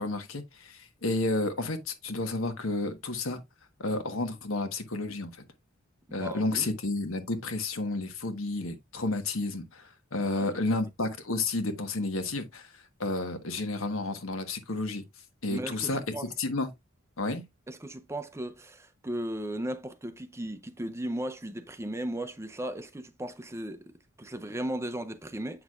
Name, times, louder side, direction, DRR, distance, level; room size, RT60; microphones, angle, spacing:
voice 1, 0.0-3.4 3.8-5.4 6.1-12.7 13.0-15.0 15.4-16.0 16.4-16.7 17.2-17.4, left 2 dB, 70° left, 1.3 m, -31 dB
voice 2, 6.1-6.7 10.2-10.5 15.5-16.3 17.7-23.8 24.2-25.6, right 1 dB, 15° right, 0.5 m, -36 dB
8.0 x 6.1 x 2.4 m
head